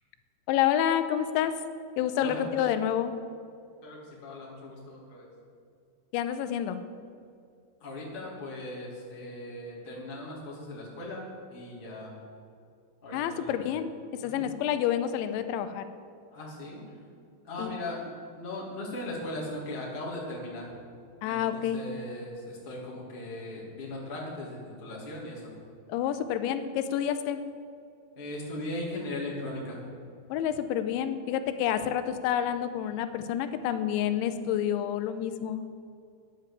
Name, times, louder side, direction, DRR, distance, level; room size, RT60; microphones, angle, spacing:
voice 1, 0.5-1.5 2.0-3.1 6.1-6.8 13.1-13.9 14.2-15.9 17.6-17.8 21.2-21.8 25.9-27.4 30.3-35.6, left 10 dB, 90° left, 10 dB, 3.0 m, -28 dB
voice 2, 2.2-2.7 3.8-5.3 7.8-12.1 13.0-13.7 14.2-14.5 16.3-17.0 17.4-18.1 18.4-20.7 21.2-25.5 28.2-29.9 31.7-31.8, left 1 dB, 15° left, -6 dB, 1.8 m, -38 dB
9.6 x 9.1 x 7.5 m, 2.4 s
omnidirectional pair, 5.2 m